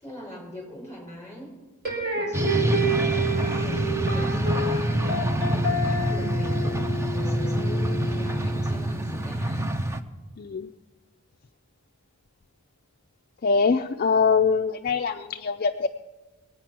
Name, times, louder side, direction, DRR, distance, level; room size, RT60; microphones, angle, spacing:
voice 1, 0.0-1.5 2.1-9.6, equal, 15° left, -1 dB, 5.8 m, -41 dB
sound 1, 1.9-8.9, right 1 dB, 45° right, 5.5 m, -29 dB
sound 2, 2.3-10.0, right 1 dB, 10° right, 0.6 m, -26 dB
voice 2, 10.4-10.7 13.4-15.9, left 5 dB, 40° left, 6 dB, 0.4 m, -23 dB
22.5 x 9.1 x 5.9 m, 1.2 s
head